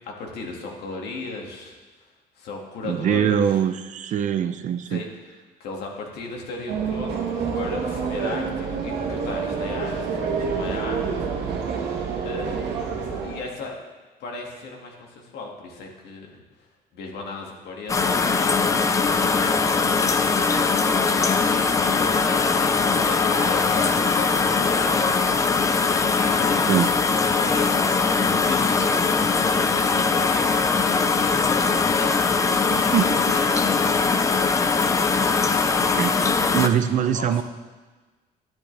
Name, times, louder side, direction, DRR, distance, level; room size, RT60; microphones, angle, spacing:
voice 1, 0.2-1.8 2.4-3.6 4.9-5.1 5.6-10.0 10.3-11.0 12.2-12.5 13.2-13.7 14.2-16.4 16.9-25.1 26.2-28.0 28.4-30.5 30.9-32.2 33.2-34.2 36.8-37.4, left 3 dB, 75° left, 0 dB, 2.1 m, -36 dB
voice 2, 2.8-5.0 26.7-26.9 32.7-33.3 35.8-36.1 36.5-37.4, right 9 dB, 45° right, 10 dB, 0.5 m, -23 dB
sound 1, 6.7-13.4, right 5 dB, 85° right, 1.6 m, -27 dB
sound 2, 17.9-36.7, left 4 dB, 20° left, 0.4 m, -21 dB
Truck, 18.4-33.6 33.9-34.0 34.2-35.1 35.4-35.5 35.9-36.2, left 4 dB, 55° left, 1.2 m, -39 dB
12.0 x 10.5 x 3.4 m, 1.3 s
cardioid pair, 165°, 17 cm